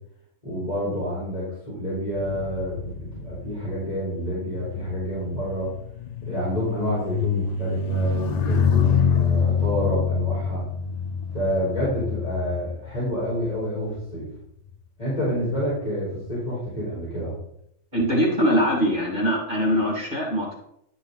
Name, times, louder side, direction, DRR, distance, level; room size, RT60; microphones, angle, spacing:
voice 1, 0.4-5.7 6.2-10.6 11.3-14.3 15.0-17.4, equal, 25° left, -9 dB, 4.3 m, -28 dB
sound 1, 2.1-13.7 14.4-14.7, left 6 dB, 75° left, 0.3 m, -27 dB
voice 2, 17.9-20.6, equal, 35° right, -3 dB, 2.6 m, -22 dB
11.5 x 5.9 x 4.0 m, 0.75 s
omnidirectional pair, 1.5 m